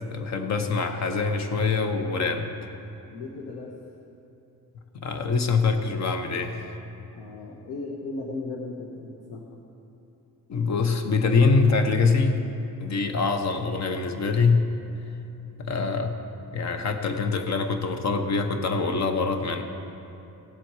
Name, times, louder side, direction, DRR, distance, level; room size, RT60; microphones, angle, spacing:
voice 1, 0.1-2.5 4.9-6.8 10.5-12.4 12.8-14.7 15.6-16.2 16.5-19.6, left 4 dB, 50° left, 6 dB, 1.0 m, -24 dB
voice 2, 3.1-3.8 7.1-9.6, left 3 dB, 85° left, -1 dB, 1.3 m, -36 dB
17.5 x 7.6 x 4.8 m, 2.9 s
cardioid pair, 140°, 36 cm